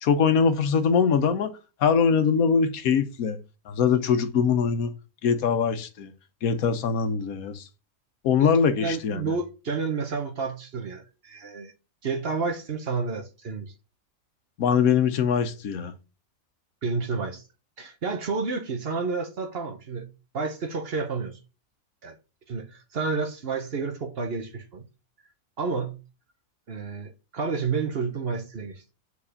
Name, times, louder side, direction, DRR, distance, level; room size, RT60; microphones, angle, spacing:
voice 1, 0.0-1.5 1.8-3.4 3.7-4.9 5.2-6.1 6.4-7.6 8.2-9.3 14.6-15.9, left 6 dB, 85° left, 1.2 m, -22 dB
voice 2, 8.4-11.7 12.0-13.7 16.8-17.4 17.8-20.1 20.3-21.4 22.0-22.1 22.5-24.8 25.6-26.0 26.7-28.8, right 4 dB, 50° right, 1.0 m, -30 dB
4.9 x 4.2 x 4.9 m
omnidirectional pair, 1.5 m